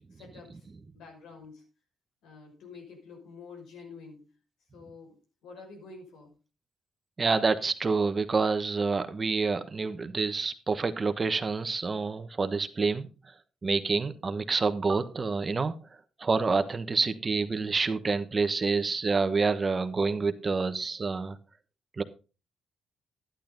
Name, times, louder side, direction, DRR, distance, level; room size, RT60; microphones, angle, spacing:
voice 1, 0.1-0.7 0.9-1.7 2.2-4.3 4.7-6.4, left 4 dB, 85° left, 1 dB, 5.8 m, -48 dB
voice 2, 7.2-13.1 13.6-15.7 16.2-21.4 22.0-22.1, right 4 dB, 30° right, 10 dB, 1.1 m, -27 dB
11.5 x 10.5 x 3.9 m, 0.32 s
cardioid pair, 90°, 0 cm